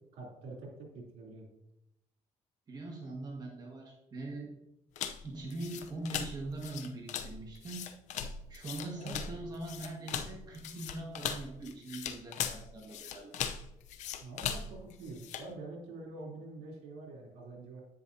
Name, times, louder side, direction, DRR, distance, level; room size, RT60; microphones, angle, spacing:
voice 1, 0.1-1.5 8.9-9.4 14.2-17.8, right 2 dB, 80° right, -2 dB, 3.3 m, -46 dB
voice 2, 2.7-4.5 5.0-7.9 8.5-13.3, right 2 dB, 30° right, 0 dB, 1.7 m, -42 dB
sound 1, 5.0-15.5, left 8 dB, 70° left, 0.7 m, -39 dB
10.5 x 9.4 x 2.8 m, 0.84 s
cardioid pair, 130°, 13 cm